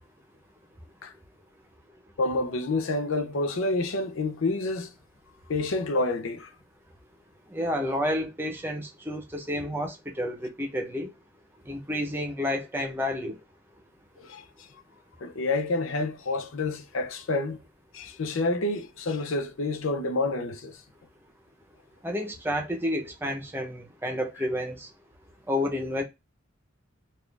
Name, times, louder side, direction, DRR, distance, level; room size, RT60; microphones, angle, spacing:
voice 1, 2.2-4.9 5.5-6.5 14.2-14.7 15.2-17.6 17.9-20.8, left 2 dB, 70° left, 0.6 m, -28 dB
voice 2, 7.5-11.1 11.7-13.3 22.0-24.9 25.5-26.0, left 1 dB, 10° right, 0.8 m, -30 dB
4.1 x 2.5 x 3.3 m
head